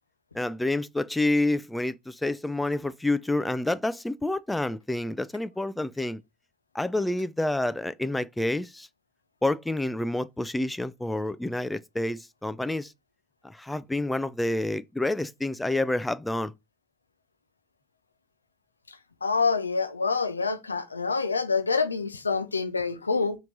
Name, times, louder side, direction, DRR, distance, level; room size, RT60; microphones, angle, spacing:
voice 1, 0.3-6.2 6.7-8.9 9.4-12.9 13.4-16.5, left 2 dB, 10° left, 0.4 m, -28 dB
voice 2, 19.2-23.4, left 4 dB, 90° left, 0.5 m, -26 dB
4.4 x 3.0 x 3.8 m
figure-of-eight pair, 60°, 0 cm